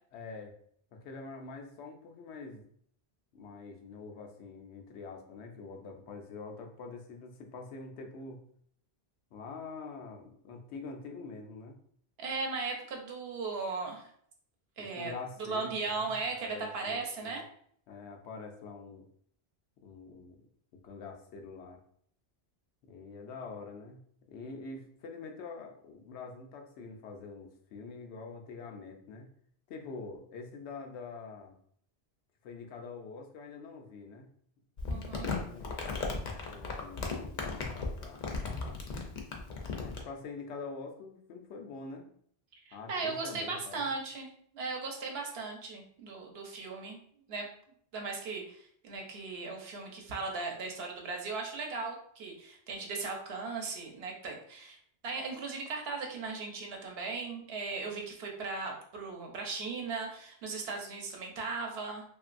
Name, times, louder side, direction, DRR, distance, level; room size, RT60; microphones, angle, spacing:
voice 1, 0.1-0.6 0.9-2.7 3.3-8.4 9.3-11.8 14.8-17.4 17.9-19.1 19.8-20.4 20.7-21.8 22.8-24.0 24.3-29.3 29.7-31.6 32.4-34.3 35.0-35.8 36.3-38.8 39.8-42.1 42.7-43.9, left 4 dB, 90° left, 3 dB, 0.9 m, -45 dB
voice 2, 12.2-14.1 14.8-15.1 15.4-17.4 34.9-35.3 42.7-47.0 47.3-47.5 47.9-54.8 55.0-62.0, right 4 dB, 70° right, 1 dB, 0.9 m, -37 dB
Crumpling crinkling, 34.8-40.0, left 4 dB, 55° left, 0.6 m, -36 dB
2.9 x 2.6 x 2.5 m, 0.63 s
omnidirectional pair, 1.1 m